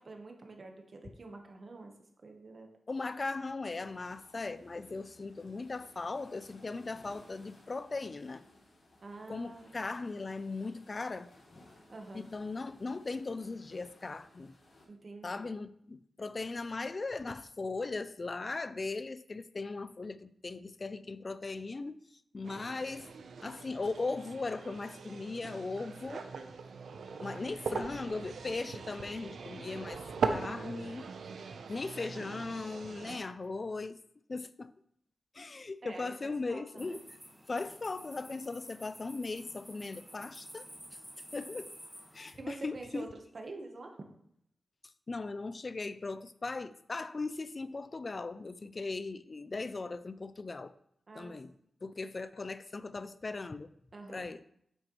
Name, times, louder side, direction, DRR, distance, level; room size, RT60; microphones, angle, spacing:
voice 1, 0.0-1.9 2.2-2.7 9.0-9.7 11.9-12.3 14.9-15.4 35.8-37.0 42.3-44.1 51.1-51.4 53.9-54.3, right 3 dB, 40° right, 1.1 m, -47 dB
voice 2, 2.9-8.4 9.3-11.3 12.1-14.6 15.2-22.0 22.3-23.1 23.4-26.3 27.2-30.0 30.3-31.1 31.7-34.0 34.3-34.7 35.3-37.2 37.5-40.7 41.3-41.7 42.1-43.1 45.1-50.7 51.1-51.5 51.8-53.7 54.1-54.4, left 3 dB, 35° left, 0.3 m, -38 dB
sound 1, 3.8-14.9, left 1 dB, 80° left, 2.6 m, -60 dB
sound 2, 22.4-33.2, right 5 dB, 85° right, 0.6 m, -40 dB
sound 3, 36.8-42.3, equal, 5° right, 1.3 m, -51 dB
8.7 x 6.3 x 3.0 m
wide cardioid pair, 150°, 0 cm